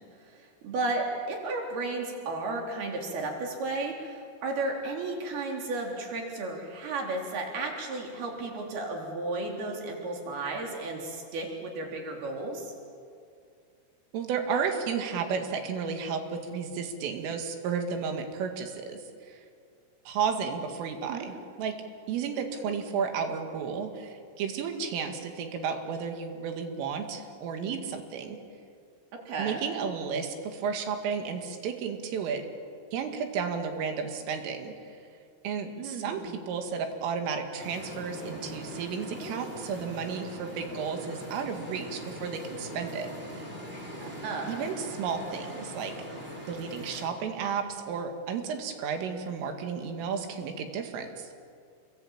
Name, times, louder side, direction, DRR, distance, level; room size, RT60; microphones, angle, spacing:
voice 1, 0.2-12.7 21.1-21.3 29.1-29.6 35.8-36.4 44.0-44.7, right 2 dB, 50° right, 1 dB, 5.3 m, -34 dB
voice 2, 14.1-19.4 20.1-21.7 22.1-28.4 29.4-32.5 32.9-34.7 35.4-43.5 44.5-45.9 46.5-51.3, right 6 dB, 75° right, 5 dB, 4.5 m, -33 dB
sound 1, 37.6-47.1, equal, 15° right, 4.3 m, -41 dB
29.0 x 21.5 x 8.9 m, 2.3 s
omnidirectional pair, 6.0 m